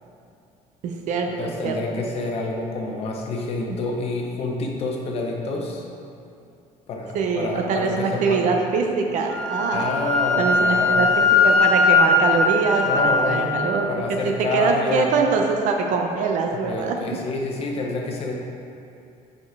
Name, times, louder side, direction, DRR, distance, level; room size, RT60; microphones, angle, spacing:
voice 1, 0.8-1.8 3.7-3.8 7.1-10.1 10.4-13.9 14.2-17.2, right 4 dB, 55° right, 2 dB, 0.7 m, -23 dB
voice 2, 1.4-5.9 6.9-8.4 9.7-11.1 12.8-13.5 13.9-15.1 16.5-18.3, left 3 dB, 40° left, 0 dB, 0.9 m, -28 dB
Wind instrument woodwind instrument, 9.3-13.5, left 3 dB, 5° left, 0.4 m, -19 dB
6.9 x 5.2 x 4.7 m, 2.5 s
cardioid pair, 175°, 15 cm